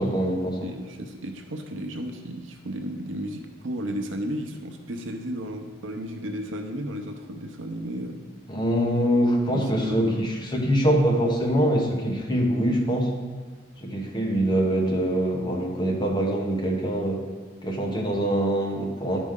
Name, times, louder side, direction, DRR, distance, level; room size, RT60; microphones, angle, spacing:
voice 1, 0.0-0.7 8.5-13.1 13.8-17.2 17.6-19.2, equal, 25° left, -1 dB, 1.1 m, -24 dB
voice 2, 0.6-8.2 9.5-10.2, equal, 70° right, 4 dB, 0.8 m, -33 dB
10.5 x 5.1 x 3.7 m, 1.4 s
head